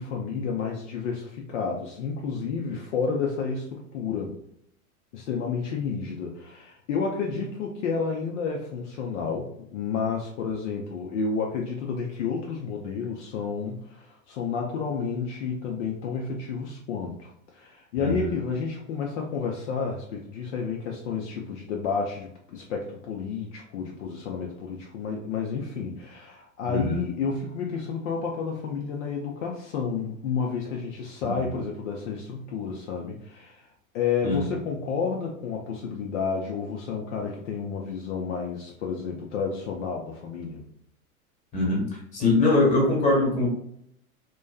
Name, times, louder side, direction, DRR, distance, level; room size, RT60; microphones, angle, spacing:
voice 1, 0.0-4.4 5.1-33.7 33.9-40.7, left 5 dB, 55° left, 0 dB, 0.5 m, -31 dB
voice 2, 18.0-18.3 26.7-27.0 31.4-31.5 34.2-34.4 41.5-41.9 42.1-43.5, left 2 dB, 15° left, -3 dB, 1.1 m, -22 dB
2.5 x 2.2 x 2.2 m, 0.71 s
figure-of-eight pair, 95°, 43 cm